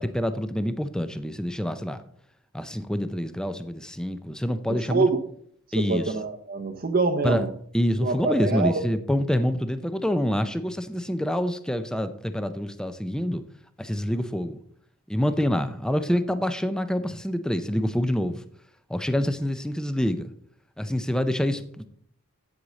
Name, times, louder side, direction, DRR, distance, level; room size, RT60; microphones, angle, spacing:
voice 1, 0.0-2.0 2.5-5.1 5.7-6.2 7.2-7.4 7.7-13.4 13.8-14.6 15.1-18.4 18.9-20.3 20.8-21.8, equal, 5° left, 0.5 m, -26 dB
voice 2, 5.8-7.5 8.0-8.8, right 3 dB, 40° right, 0.7 m, -25 dB
8.6 x 8.0 x 4.1 m
head